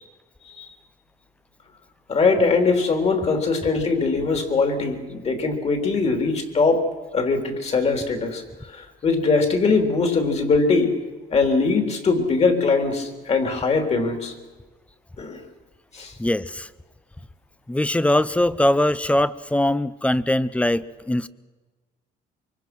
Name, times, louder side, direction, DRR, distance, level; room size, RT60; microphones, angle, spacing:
voice 1, 2.1-6.8 7.1-8.4 8.7-10.9 11.3-14.3 15.2-15.4 15.9-16.1, left 4 dB, 40° left, 5 dB, 3.7 m, -21 dB
voice 2, 16.2-16.7 17.7-21.3, left 1 dB, 5° left, 17 dB, 0.7 m, -21 dB
24.5 x 24.0 x 6.2 m, 1.3 s
cardioid pair, 110°, 17 cm